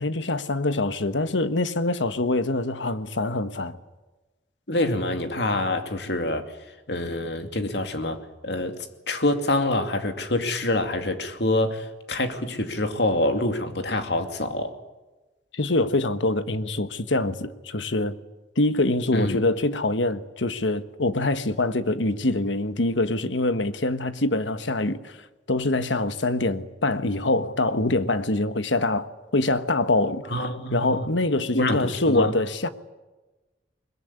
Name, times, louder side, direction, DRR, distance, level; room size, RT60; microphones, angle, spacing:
voice 1, 0.0-3.8 15.5-18.2 18.6-25.2 25.5-30.2 30.7-32.7, left 2 dB, 85° left, 1.4 m, -24 dB
voice 2, 4.7-6.5 6.9-8.8 9.1-14.7 19.1-19.4 30.3-31.0 31.5-32.3, left 1 dB, 65° left, 2.6 m, -26 dB
22.5 x 21.5 x 9.6 m
head